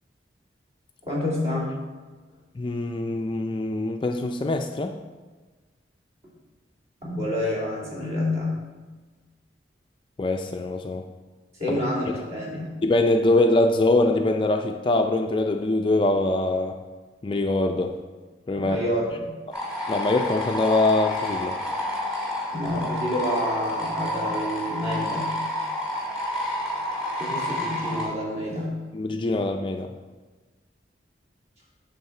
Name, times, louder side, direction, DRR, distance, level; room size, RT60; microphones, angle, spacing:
voice 1, 1.0-1.7 7.0-8.5 11.6-12.7 18.6-19.3 22.5-25.4 27.2-28.8, left 1 dB, 35° right, -5 dB, 2.5 m, -28 dB
voice 2, 2.6-4.9 10.2-11.0 11.7-11.8 12.1-12.2 12.8-16.8 17.2-18.0 18.5-18.8 19.9-21.6 28.9-29.9, left 2 dB, 25° left, 5 dB, 0.4 m, -23 dB
sound 1, 19.5-28.0, left 1 dB, 5° right, 2.2 m, -29 dB
8.3 x 4.0 x 6.5 m, 1.3 s
head